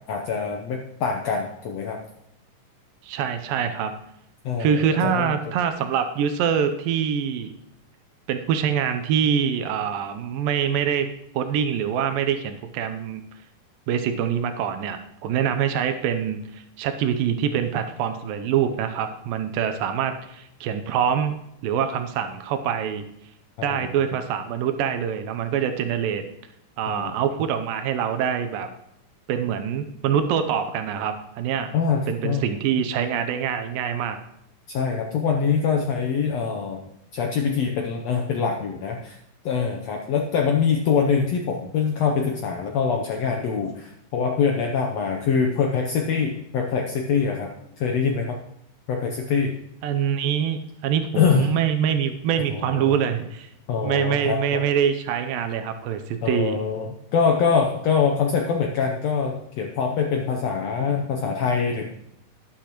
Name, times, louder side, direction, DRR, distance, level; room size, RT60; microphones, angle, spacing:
voice 1, 0.1-2.0 4.4-5.5 23.6-23.9 26.9-27.1 31.7-32.4 34.7-36.8 37.1-39.2 39.4-47.5 47.8-48.4 48.9-49.5 51.1-51.5 52.5-53.0 53.7-54.6 56.2-61.9, left 6 dB, 80° left, 2 dB, 1.5 m, -24 dB
voice 2, 3.0-3.9 4.6-7.5 8.3-11.1 11.3-13.2 13.9-21.4 21.6-23.1 23.6-26.2 26.8-28.7 29.3-31.7 32.1-34.2 49.8-53.5 53.8-56.6, right 8 dB, 80° right, 8 dB, 2.4 m, -25 dB
12.0 x 11.0 x 3.0 m, 0.78 s
omnidirectional pair, 4.0 m